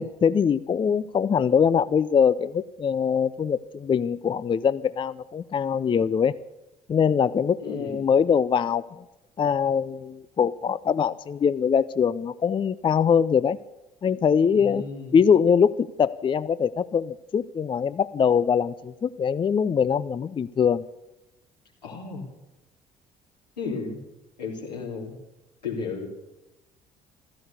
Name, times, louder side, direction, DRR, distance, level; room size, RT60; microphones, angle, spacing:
voice 1, 0.0-6.3 6.9-9.0 9.4-13.6 14.0-14.8 15.1-20.8, left 7 dB, 25° left, 16 dB, 0.5 m, -23 dB
voice 2, 7.6-8.0 14.5-15.2 21.8-22.2 23.6-24.0 24.4-25.2 25.6-26.1, left 4 dB, 80° left, -2 dB, 3.4 m, -33 dB
15.5 x 13.5 x 6.7 m, 0.94 s
figure-of-eight pair, 55°, 21 cm